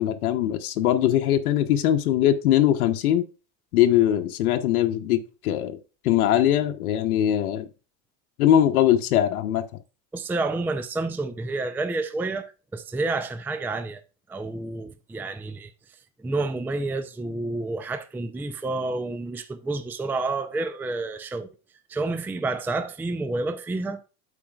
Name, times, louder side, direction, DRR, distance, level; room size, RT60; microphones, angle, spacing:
voice 1, 0.0-3.2 3.7-5.8 6.0-7.7 8.4-9.6, left 11 dB, 80° left, 0.9 m, -21 dB
voice 2, 10.1-14.0 14.3-15.7 16.2-21.5 21.9-24.0, right 3 dB, 5° right, 0.5 m, -29 dB
13.0 x 4.4 x 2.4 m
hypercardioid pair, 100°, 43 cm